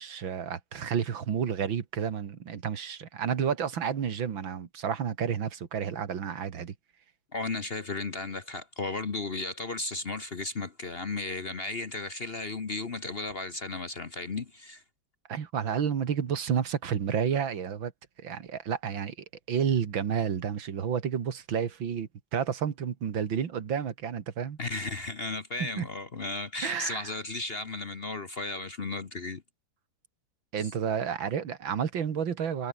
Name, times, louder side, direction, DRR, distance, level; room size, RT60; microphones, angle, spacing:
voice 1, 0.0-6.7 15.3-17.9 18.2-19.2 19.5-24.6 25.6-25.9 26.6-27.1 30.5-32.7, right 7 dB, 80° right, 2.5 m, -30 dB
voice 2, 7.3-14.8 24.6-29.4 30.6-30.7, left 3 dB, 35° left, 1.2 m, -35 dB
omnidirectional pair, 2.1 m